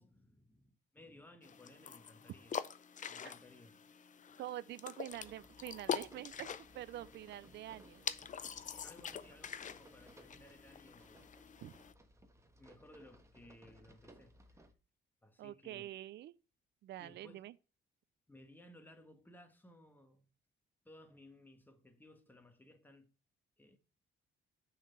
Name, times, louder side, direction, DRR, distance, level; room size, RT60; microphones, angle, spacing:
voice 1, 0.0-2.6 3.1-3.9 4.2-4.4 8.7-11.2 12.6-14.7 15.2-15.9 17.0-17.4 18.3-20.3 20.8-23.1 23.6-23.8, left 1 dB, 10° left, 1.4 m, -60 dB
sound 1, 1.4-11.9, left 7 dB, 40° left, 0.6 m, -45 dB
voice 2, 4.4-8.0 11.6-11.7 15.4-16.3 16.8-17.5, right 13 dB, 60° right, 0.4 m, -46 dB
sound 2, 5.1-14.7, right 1 dB, 15° right, 1.2 m, -62 dB
6.1 x 4.3 x 5.4 m
cardioid pair, 90°, 20 cm